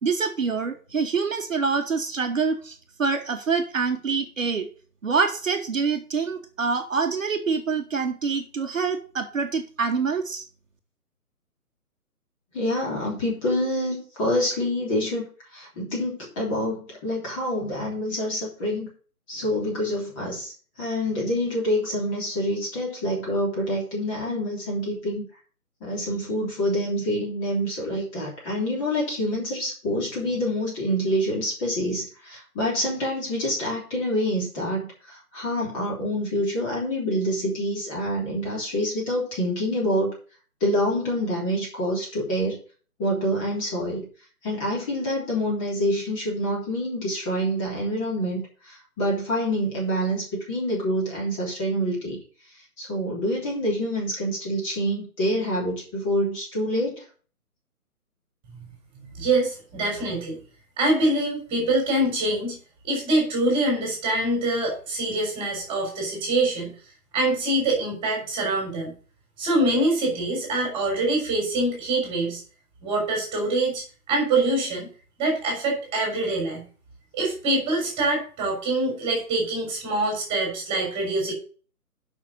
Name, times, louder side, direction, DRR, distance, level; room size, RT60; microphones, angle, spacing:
voice 1, 0.0-4.7 5.0-10.4, right 5 dB, 55° right, 5 dB, 1.3 m, -26 dB
voice 2, 12.5-15.3 15.5-18.9 19.3-20.5 20.8-25.2 25.8-40.1 40.6-42.6 43.0-44.1 44.4-52.2 52.8-57.0, equal, 20° left, -3 dB, 3.3 m, -26 dB
voice 3, 59.2-60.4 60.8-62.6 62.8-66.7 67.1-68.9 69.4-72.4 72.8-74.9 75.2-76.6 77.1-81.3, right 2 dB, 10° right, -1 dB, 3.8 m, -24 dB
7.4 x 5.8 x 7.0 m, 0.40 s
figure-of-eight pair, 150°, 46 cm